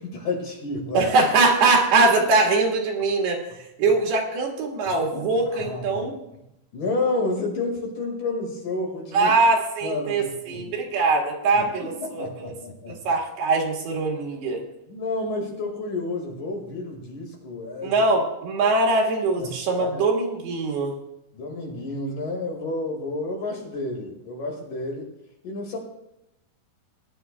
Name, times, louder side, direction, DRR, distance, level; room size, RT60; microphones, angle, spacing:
voice 1, 0.0-1.1 3.8-3.9 4.9-6.1 6.7-9.3 9.8-10.7 11.5-13.0 14.9-18.0 19.4-19.5 19.8-20.0 21.3-25.1 25.4-25.8, left 2 dB, 55° left, 0 dB, 3.2 m, -30 dB
voice 2, 0.9-3.4 3.8-6.2 9.1-12.5 12.9-14.6 17.8-21.0, right 3 dB, 75° right, 0 dB, 3.6 m, -22 dB
20.0 x 11.0 x 2.2 m, 0.87 s
omnidirectional pair, 4.8 m